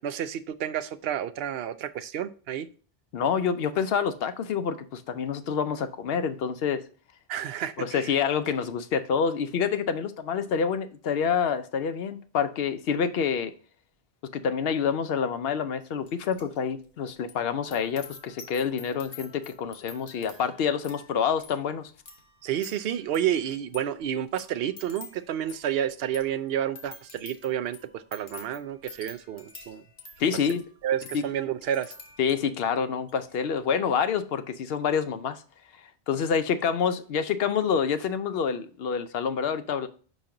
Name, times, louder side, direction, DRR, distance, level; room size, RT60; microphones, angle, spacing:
voice 1, 0.0-2.7 7.3-8.1 22.4-29.8 30.8-31.9, right 10 dB, 70° right, 0.8 m, -30 dB
voice 2, 3.1-6.8 7.8-13.5 14.2-21.9 30.2-30.6 31.1-31.2 32.2-35.4 36.1-39.9, left 7 dB, 70° left, 0.8 m, -27 dB
sound 1, 16.1-16.6 16.8-32.6 33.0-33.4, left 4 dB, 55° left, 1.2 m, -49 dB
5.7 x 5.2 x 3.7 m
omnidirectional pair, 1.1 m